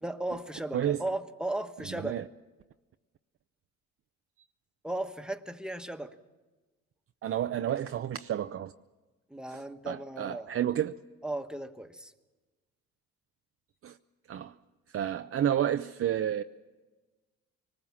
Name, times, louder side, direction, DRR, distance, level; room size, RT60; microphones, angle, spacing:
voice 1, 0.0-2.2 4.8-6.1 9.3-10.5 11.2-12.1, right 1 dB, 5° right, 1.3 m, -36 dB
voice 2, 1.9-2.2 7.2-8.7 9.5-11.0 13.8-14.0 14.3-14.5 14.9-16.4, right 10 dB, 50° right, 0.6 m, -30 dB
24.0 x 20.0 x 7.2 m
cardioid pair, 90°, 30 cm